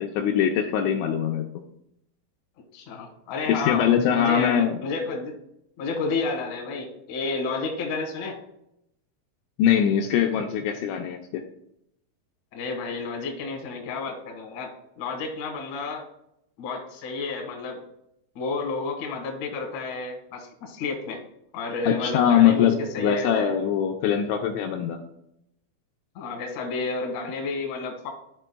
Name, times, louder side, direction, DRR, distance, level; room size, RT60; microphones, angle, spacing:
voice 1, 0.0-1.5 3.5-4.8 9.6-11.4 21.9-25.0, left 9 dB, 85° left, 2 dB, 2.7 m, -22 dB
voice 2, 2.7-5.4 5.8-8.4 12.5-16.0 16.6-17.8 18.4-21.2 21.5-23.5 26.2-28.1, left 3 dB, 70° left, 1 dB, 1.8 m, -31 dB
13.0 x 4.5 x 2.2 m, 0.79 s
omnidirectional pair, 5.5 m